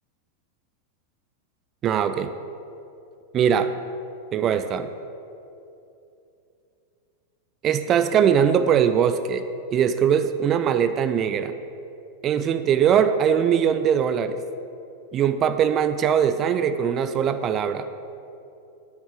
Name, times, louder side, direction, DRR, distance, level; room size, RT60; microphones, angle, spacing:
voice 1, 1.8-2.3 3.3-3.7 4.3-4.9 7.6-9.4 9.7-11.5 12.2-14.4 15.1-17.9, right 8 dB, 30° right, 10 dB, 0.3 m, -21 dB
7.3 x 7.3 x 4.9 m, 2.7 s
figure-of-eight pair, 90°, 0 cm